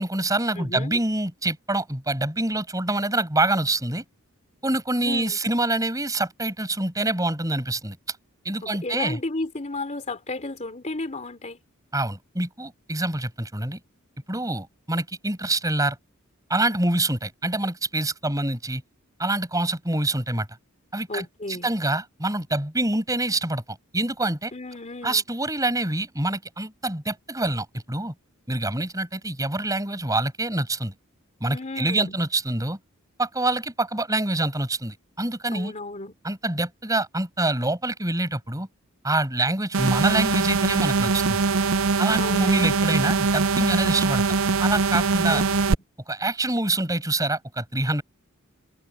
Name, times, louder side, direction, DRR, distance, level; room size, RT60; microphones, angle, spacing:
voice 1, 0.0-4.0 4.6-8.2 8.4-9.2 11.9-13.8 14.3-16.0 16.5-18.8 19.2-20.5 20.9-24.5 25.0-28.1 28.5-30.9 31.4-32.8 33.2-35.7 36.2-38.7 39.0-41.4 42.0-45.4 46.1-48.0, right 2 dB, 15° right, 5.9 m, -26 dB
voice 2, 0.5-1.0 5.0-5.4 8.6-11.6 21.1-21.7 24.5-25.2 31.5-32.1 35.5-36.1 42.2-42.7 45.3-45.6, left 2 dB, 35° left, 3.3 m, -33 dB
sound 1, 39.7-45.7, right 4 dB, 70° right, 0.7 m, -22 dB
head